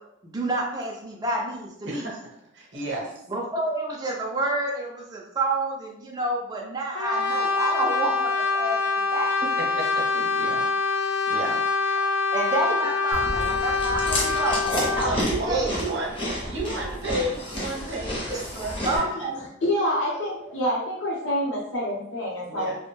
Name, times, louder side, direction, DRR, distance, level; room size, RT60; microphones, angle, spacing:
voice 1, 0.2-2.1 3.3-9.3 12.3-14.7 15.5-15.8 18.3-18.4 18.8-19.3 20.2-20.3, right 2 dB, 20° right, -2 dB, 0.3 m, -28 dB
voice 2, 1.9-2.2 2.5-3.1 9.4-12.2 14.9-19.1 22.5-22.8, right 2 dB, 60° right, -2 dB, 0.7 m, -33 dB
Brass instrument, 6.9-15.1, left 4 dB, 80° left, 0.3 m, -25 dB
Chewing mastication, 13.1-19.0, left 1 dB, 25° left, 0.6 m, -30 dB
voice 3, 18.9-22.7, equal, 65° left, -8 dB, 0.7 m, -27 dB
2.5 x 2.1 x 3.0 m, 0.77 s
head